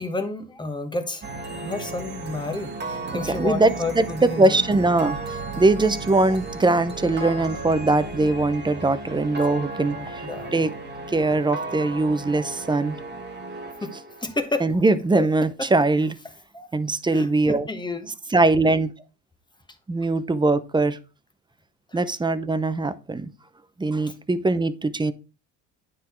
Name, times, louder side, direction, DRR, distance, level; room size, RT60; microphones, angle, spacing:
voice 1, 0.0-4.6 9.9-10.6 13.8-13.9 14.2-14.7 16.5-16.7 17.1-18.1 21.9-22.0 24.1-24.2, left 3 dB, 10° left, 1.2 m, -31 dB
sound 1, 1.2-14.5, right 3 dB, 30° right, 1.4 m, -35 dB
voice 2, 3.1-5.2 5.6-10.7 11.1-13.0 14.6-16.1 16.7-17.7 18.3-18.9 19.9-21.0 21.9-23.3 23.8-25.1, right 2 dB, 10° right, 0.6 m, -21 dB
9.2 x 3.8 x 4.3 m
supercardioid pair, 95°, 37 cm